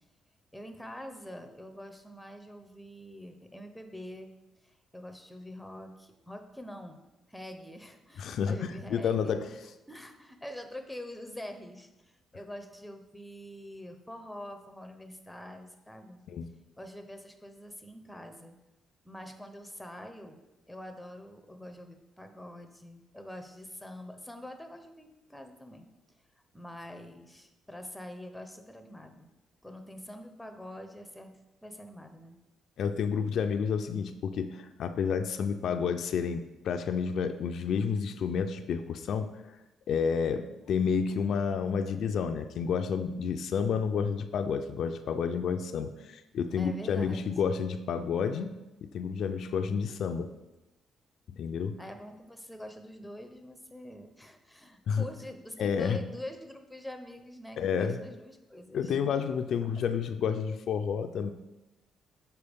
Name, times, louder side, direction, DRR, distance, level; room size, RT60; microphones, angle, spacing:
voice 1, 0.5-4.3 4.6-7.0 7.3-9.3 9.9-16.2 16.8-18.6 19.0-20.4 20.7-25.8 26.5-29.3 29.6-32.4 46.6-47.3 51.8-59.0 59.7-59.8, left 1 dB, 5° left, 6 dB, 0.7 m, -45 dB
voice 2, 8.2-9.5 16.3-16.5 32.8-39.3 39.9-50.3 51.4-51.8 54.9-55.1 55.6-56.0 57.6-58.0 58.7-61.3, left 6 dB, 70° left, 8 dB, 0.3 m, -30 dB
6.8 x 4.4 x 3.5 m, 1.0 s
cardioid pair, 90°, 0 cm